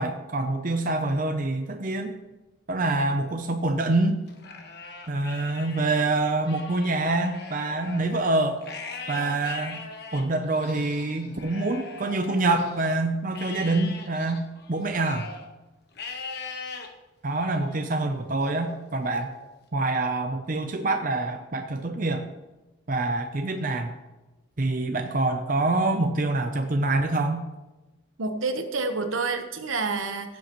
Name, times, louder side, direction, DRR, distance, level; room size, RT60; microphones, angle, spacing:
voice 1, 0.0-2.1 2.7-4.3 5.1-8.6 9.1-9.8 10.1-15.3 17.2-19.3 19.7-22.3 22.9-23.9 24.6-27.4, right 2 dB, 40° right, 5 dB, 0.6 m, -26 dB
Livestock farm animals working animals, 4.3-5.9 6.3-12.9 13.3-15.5 15.9-16.9 17.4-17.8 18.4-19.5, left 4 dB, 50° left, 1.2 m, -41 dB
voice 2, 28.2-30.4, right 3 dB, 75° right, 7 dB, 1.1 m, -28 dB
15.5 x 7.5 x 3.1 m, 1.1 s
head